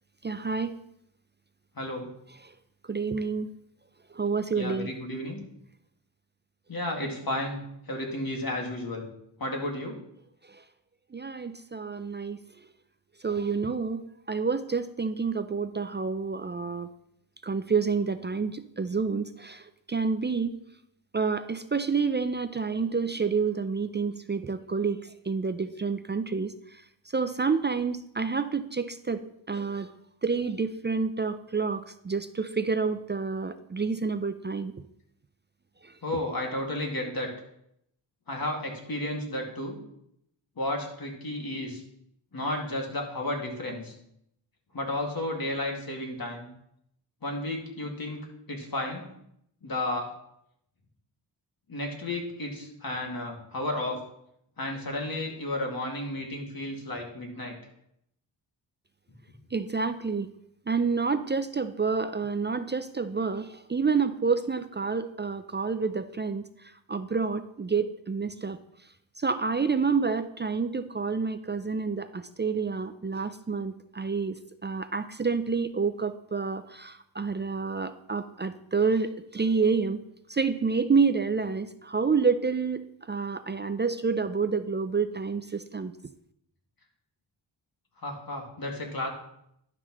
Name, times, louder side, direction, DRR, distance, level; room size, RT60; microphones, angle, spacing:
voice 1, 0.2-0.7 2.9-3.5 4.1-4.9 11.1-12.4 13.2-16.9 17.4-20.6 21.1-25.0 25.3-26.5 27.1-29.9 30.2-34.7 35.8-35.9 59.5-60.3 60.7-66.5 66.9-68.6 69.2-80.0 80.3-85.9, right 5 dB, 25° right, 11 dB, 0.4 m, -28 dB
voice 2, 1.8-2.1 4.5-5.4 6.7-7.6 7.9-9.1 9.4-10.0 36.0-37.3 38.3-39.8 40.6-41.8 42.3-43.9 44.7-46.5 47.2-48.2 48.5-49.1 49.6-50.1 51.7-54.0 54.6-57.5 88.0-89.1, left 1 dB, 45° left, 1 dB, 2.1 m, -32 dB
11.0 x 6.0 x 3.0 m, 0.76 s
cardioid pair, 60°, 48 cm